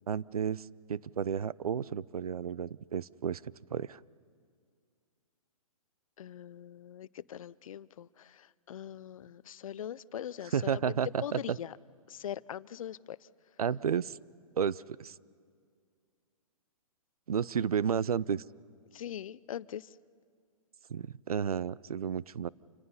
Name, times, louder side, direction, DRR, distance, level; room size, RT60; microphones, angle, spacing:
voice 1, 0.1-3.4 3.7-4.0 10.5-11.6 13.6-14.2 14.6-15.1 17.3-18.4 20.9-22.5, right 7 dB, 85° right, 21 dB, 0.5 m, -32 dB
voice 2, 6.2-10.9 11.2-11.7 12.1-13.2 18.9-19.9, left 10 dB, 65° left, 20 dB, 0.6 m, -42 dB
28.0 x 25.0 x 5.6 m, 2.1 s
hypercardioid pair, 130°, 18 cm